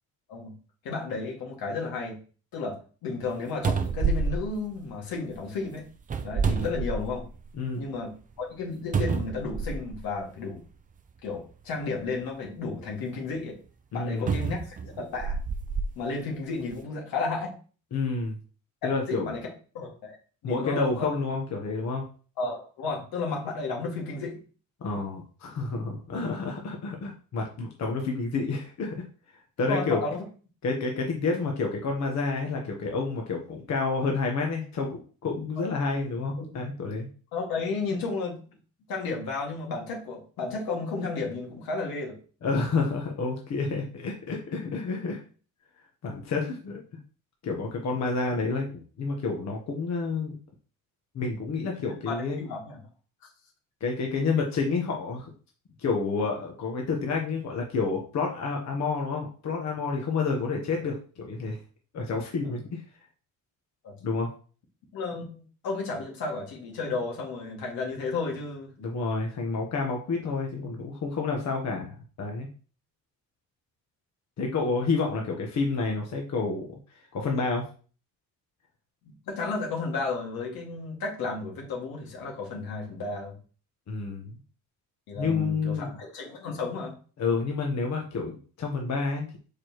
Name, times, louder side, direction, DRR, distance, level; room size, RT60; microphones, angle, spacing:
voice 1, 0.8-2.2 2.5-2.8 3.0-5.8 6.2-7.2 7.8-10.6 11.2-13.6 13.9-15.4 16.0-17.5 18.8-19.5 19.7-20.2 20.4-21.1 22.4-24.4 29.7-30.2 36.4-36.5 37.3-38.4 38.9-42.2 51.8-52.8 62.4-62.6 63.8-63.9 64.9-68.7 79.0-83.3 85.1-86.9, left 4 dB, 85° left, -1 dB, 2.2 m, -33 dB
sound 1, 3.2-3.3 3.6-5.3 6.0-7.4 7.9-8.0 8.9-10.0 11.0-11.1 14.3-15.9 16.6-16.7, right 5 dB, 25° right, 0.4 m, -28 dB
voice 2, 7.5-7.8 13.9-14.3 17.9-18.4 18.8-19.3 20.4-22.0 24.8-29.0 29.6-30.0 30.6-37.1 42.4-45.2 46.0-46.8 47.4-50.4 51.1-52.4 53.8-55.3 55.8-61.6 61.9-62.8 64.0-64.3 68.8-72.5 74.4-76.7 77.1-77.6 83.9-84.4 85.2-85.9 87.2-89.4, left 4 dB, 50° left, 1 dB, 1.2 m, -29 dB
6.9 x 4.9 x 3.1 m, 0.39 s
cardioid pair, 160°, 35 cm